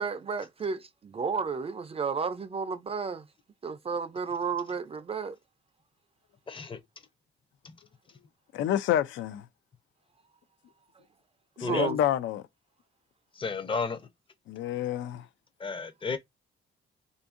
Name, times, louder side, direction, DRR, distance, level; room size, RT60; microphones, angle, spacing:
voice 1, 0.0-3.2 3.6-5.4 11.6-12.0, right 5 dB, 30° right, 0.4 m, -32 dB
voice 2, 6.5-6.8 11.6-11.9 13.4-14.0 15.6-16.2, left 4 dB, 25° left, 0.6 m, -32 dB
voice 3, 8.5-9.4 11.6-12.4 14.5-15.3, left 11 dB, 75° left, 0.4 m, -28 dB
2.6 x 2.5 x 2.5 m
cardioid pair, 90°, 20 cm